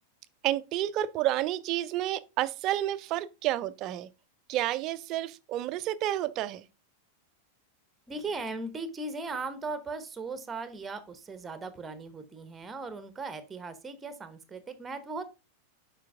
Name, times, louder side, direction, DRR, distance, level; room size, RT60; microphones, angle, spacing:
voice 1, 0.4-4.1 4.5-6.6, right 14 dB, 40° right, 0.5 m, -30 dB
voice 2, 8.1-15.2, right 3 dB, 15° right, 1.1 m, -38 dB
7.4 x 5.2 x 3.5 m
figure-of-eight pair, 90°, 0 cm